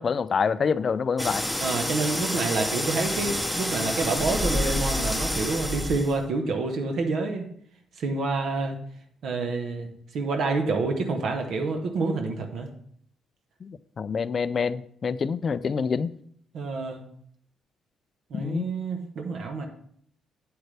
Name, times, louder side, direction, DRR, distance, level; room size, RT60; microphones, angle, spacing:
voice 1, 0.0-1.5 13.6-16.1 18.3-18.7, left 5 dB, 45° left, 15 dB, 0.4 m, -26 dB
sound 1, 1.2-6.2, left 1 dB, ahead, 0.8 m, -28 dB
voice 2, 1.6-7.5 8.0-8.8 9.2-12.7 16.5-17.0 18.3-19.7, right 3 dB, 70° right, 4 dB, 1.2 m, -28 dB
7.9 x 7.9 x 3.4 m, 0.63 s
cardioid pair, 90°, 0 cm